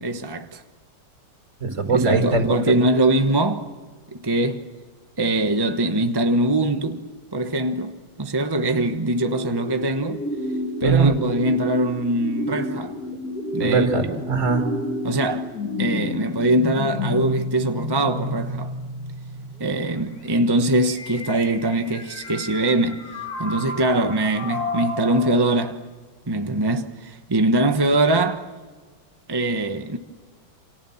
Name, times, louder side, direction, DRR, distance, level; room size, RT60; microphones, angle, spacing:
voice 1, 0.0-0.6 1.9-3.7 4.1-4.7 5.2-7.0 7.3-10.2 10.8-13.0 13.5-13.9 15.0-15.5 15.8-18.7 19.6-25.8 26.3-28.5 29.3-30.0, right 2 dB, 20° right, 0.7 m, -22 dB
voice 2, 1.6-2.5 10.8-11.2 13.6-14.6, right 3 dB, 35° right, 5.1 m, -20 dB
sound 1, 9.2-25.4, left 1 dB, 45° left, 2.7 m, -31 dB
29.0 x 27.0 x 7.2 m
omnidirectional pair, 2.3 m